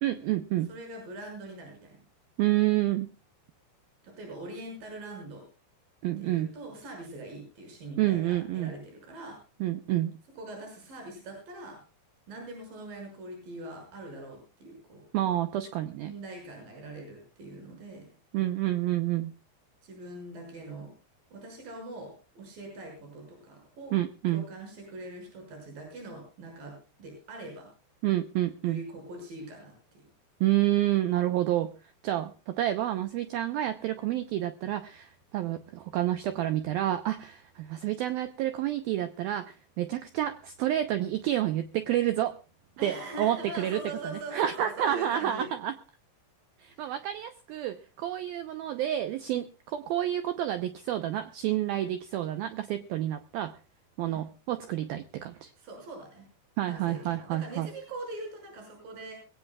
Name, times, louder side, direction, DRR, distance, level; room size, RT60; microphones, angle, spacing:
voice 1, 0.0-0.7 2.4-3.1 6.0-6.5 8.0-8.7 9.6-10.1 15.1-16.1 18.3-19.3 23.9-24.4 28.0-28.8 30.4-31.7 32.0-42.4 42.8-43.8 44.3-45.7 46.6-53.5 54.0-55.5 56.6-57.7, right 13 dB, 75° right, 9 dB, 2.2 m, -29 dB
voice 2, 0.7-2.0 4.0-5.5 6.2-9.4 10.3-11.8 12.3-15.0 16.0-18.1 19.8-20.9 21.3-24.0 24.3-26.7 27.0-27.7 28.6-30.0 42.8-45.5 46.7-47.0 54.0-54.3 55.6-56.3 56.7-59.1, right 2 dB, 50° right, 2 dB, 7.7 m, -42 dB
22.0 x 17.0 x 2.3 m, 0.33 s
omnidirectional pair, 5.2 m